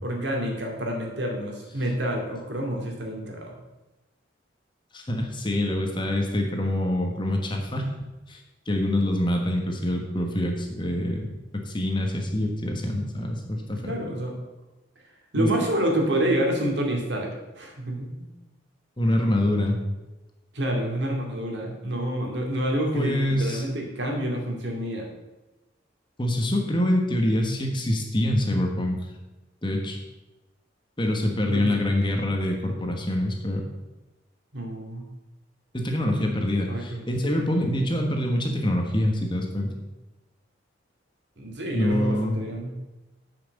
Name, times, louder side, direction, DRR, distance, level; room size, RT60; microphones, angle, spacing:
voice 1, 0.0-3.5 13.7-14.4 15.3-17.3 17.5-18.1 19.1-19.2 20.5-25.0 31.5-31.7 34.5-35.0 36.7-37.0 41.4-42.7, right 1 dB, 60° right, 0 dB, 2.4 m, -28 dB
voice 2, 4.9-7.9 8.3-8.4 8.7-11.3 11.5-13.9 15.3-15.5 19.0-19.8 22.9-23.6 26.2-29.0 29.6-30.0 31.0-33.6 35.7-39.7 41.7-42.4, left 1 dB, 25° left, 2 dB, 1.3 m, -25 dB
8.9 x 6.0 x 7.1 m, 1.0 s
head